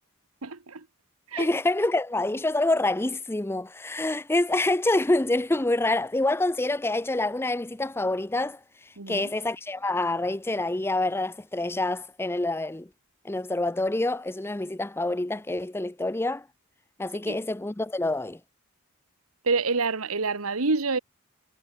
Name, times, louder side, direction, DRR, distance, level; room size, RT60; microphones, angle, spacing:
voice 1, 0.4-0.9 1.3-1.5 9.0-9.3 17.3-17.4 19.4-21.0, right 4 dB, 85° right, 1.4 m, -27 dB
voice 2, 1.4-8.6 9.1-12.9 13.2-16.4 17.0-18.4, left 2 dB, 10° left, 0.5 m, -26 dB
head